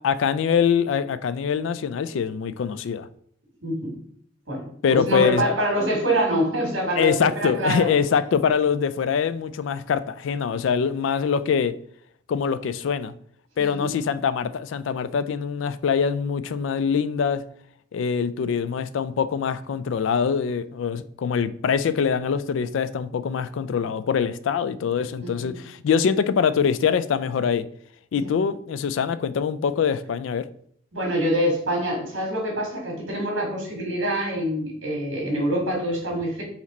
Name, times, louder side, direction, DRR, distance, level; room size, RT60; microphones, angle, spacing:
voice 1, 0.0-3.1 4.8-5.5 7.0-11.8 12.3-13.1 13.6-17.4 17.9-27.7 28.1-30.5, left 6 dB, 70° left, 0.3 m, -24 dB
voice 2, 3.6-4.0 4.5-7.9 13.6-13.9 25.2-25.6 28.1-28.3 30.9-36.4, right 1 dB, 75° right, 2.0 m, -25 dB
4.1 x 3.0 x 4.1 m
head